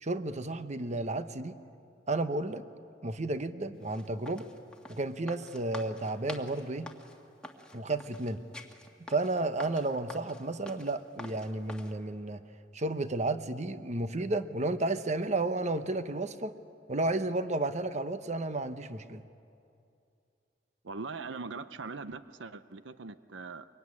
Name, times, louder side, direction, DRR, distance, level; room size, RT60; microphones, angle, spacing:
voice 1, 0.0-1.6 2.1-2.6 3.0-4.5 4.9-6.9 7.7-8.4 9.1-12.4 12.7-16.5 16.9-19.2, right 2 dB, 40° right, 10 dB, 1.0 m, -32 dB
sound 1, 3.8-11.9, left 1 dB, 5° left, 1.9 m, -47 dB
voice 2, 20.8-23.7, right 4 dB, 85° right, 12 dB, 0.8 m, -41 dB
24.0 x 23.0 x 9.7 m, 2.5 s
head